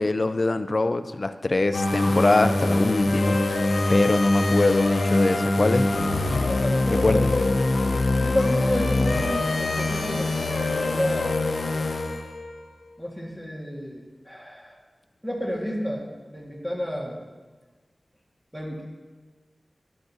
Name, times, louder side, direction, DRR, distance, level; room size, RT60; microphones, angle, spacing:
voice 1, 0.0-3.4 3.9-5.9 6.9-7.3, left 2 dB, 45° left, 10 dB, 0.4 m, -23 dB
sound 1, 1.7-12.6, left 2 dB, 90° left, 0.7 m, -24 dB
voice 2, 6.5-7.5 7.8-11.3 13.0-14.8 15.2-17.1 18.5-18.8, equal, 5° right, -2 dB, 1.7 m, -31 dB
11.5 x 10.5 x 2.7 m, 1.3 s
wide cardioid pair, 90°, 0 cm